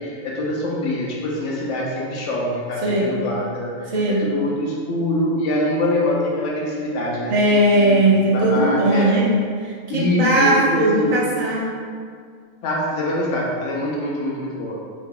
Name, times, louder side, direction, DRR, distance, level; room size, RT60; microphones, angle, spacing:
voice 1, 0.0-7.3 7.8-9.1 9.9-11.1 12.6-14.8, left 1 dB, 85° left, -4 dB, 0.9 m, -24 dB
voice 2, 2.8-3.2 3.9-4.3 7.3-9.3 9.6-11.7, right 1 dB, 45° right, -4 dB, 0.5 m, -18 dB
2.9 x 2.7 x 3.6 m, 2.1 s
omnidirectional pair, 1.2 m